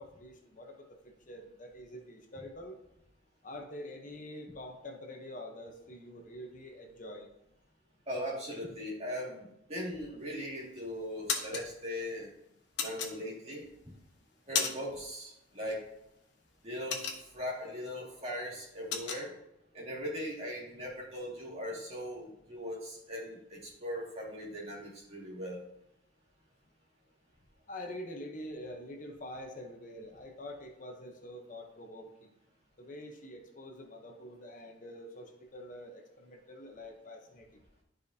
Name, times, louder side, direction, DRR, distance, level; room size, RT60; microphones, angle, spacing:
voice 1, 0.0-2.8 3.4-7.3 27.7-32.3 32.8-37.5, left 1 dB, 40° left, 3 dB, 0.9 m, -46 dB
voice 2, 8.1-12.3 12.8-13.6 14.5-15.9 16.6-17.1 17.3-19.3 19.7-25.6, equal, 35° right, -4 dB, 2.1 m, -39 dB
sound 1, 10.2-10.7 11.0-11.6 12.8-13.6 14.1-15.0 15.3-15.6 15.9-17.6 18.0-18.2 18.4-19.2, left 6 dB, 60° left, 1.0 m, -34 dB
12.0 x 5.0 x 2.7 m, 0.82 s
head